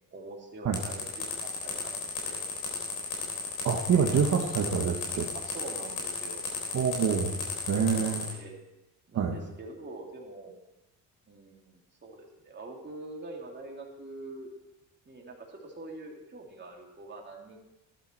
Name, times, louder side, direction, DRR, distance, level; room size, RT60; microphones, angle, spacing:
voice 1, 0.1-2.4 5.3-6.4 8.0-8.6 9.1-10.6 11.3-14.5 15.0-17.6, right 2 dB, 30° right, -1 dB, 3.1 m, -44 dB
sound 1, 0.7-8.3, left 5 dB, 80° left, 3.9 m, -35 dB
voice 2, 3.6-5.3 6.7-7.4 7.7-8.3 9.1-9.4, right 7 dB, 50° right, 1 dB, 1.4 m, -26 dB
13.0 x 10.5 x 4.6 m, 0.96 s
cardioid pair, 90°, 36 cm